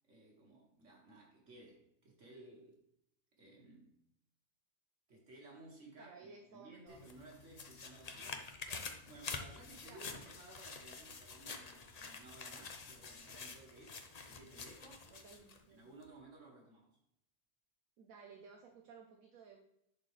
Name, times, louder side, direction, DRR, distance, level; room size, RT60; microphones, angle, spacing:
voice 1, 0.1-2.8 3.4-4.0 5.1-15.1 15.7-17.0, right 2 dB, 55° right, -1 dB, 2.1 m, -58 dB
voice 2, 6.0-7.0 9.9-10.2 15.1-15.9 18.0-19.6, right 5 dB, 70° right, 2 dB, 1.2 m, -57 dB
sound 1, 6.9-15.6 16.0-16.1, left 4 dB, 45° left, 0.5 m, -48 dB
11.0 x 4.3 x 3.2 m, 0.78 s
omnidirectional pair, 1.6 m